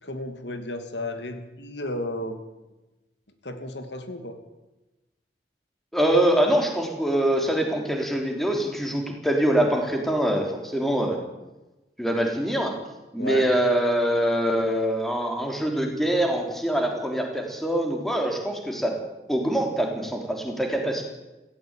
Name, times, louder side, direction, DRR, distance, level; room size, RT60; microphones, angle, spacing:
voice 1, 0.0-2.4 3.4-4.4 13.2-13.5, left 1 dB, 85° left, 7 dB, 2.8 m, -33 dB
voice 2, 5.9-11.2 12.0-12.8 13.1-18.9 19.3-21.0, right 1 dB, ahead, 2 dB, 3.6 m, -24 dB
18.0 x 16.5 x 9.2 m, 1.1 s
head